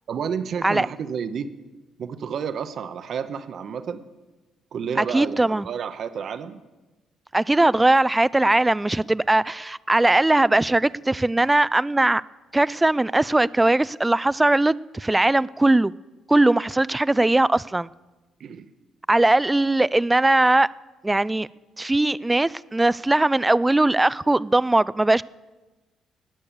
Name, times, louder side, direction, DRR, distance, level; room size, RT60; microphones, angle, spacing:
voice 1, 0.1-1.5 2.0-4.0 4.7-6.6 18.4-18.7, right 7 dB, 60° right, 0.8 m, -30 dB
voice 2, 5.0-5.7 7.3-12.2 12.5-15.9 16.3-17.9 19.1-20.7 21.0-21.5 21.8-25.2, right 2 dB, 15° right, 0.3 m, -20 dB
19.0 x 6.7 x 7.2 m
cardioid pair, 90°, 0 cm